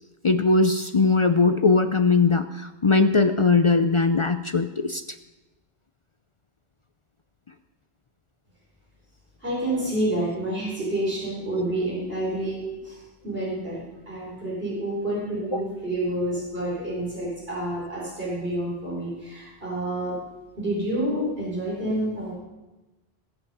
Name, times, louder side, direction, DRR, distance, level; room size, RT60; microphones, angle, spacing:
voice 1, 0.2-5.0 15.5-15.6, left 3 dB, 40° left, 9 dB, 0.5 m, -20 dB
voice 2, 9.4-13.0 13.2-20.2 20.6-22.3, right 1 dB, 65° right, -7 dB, 4.7 m, -28 dB
21.0 x 7.0 x 5.5 m, 1.1 s
omnidirectional pair, 1.0 m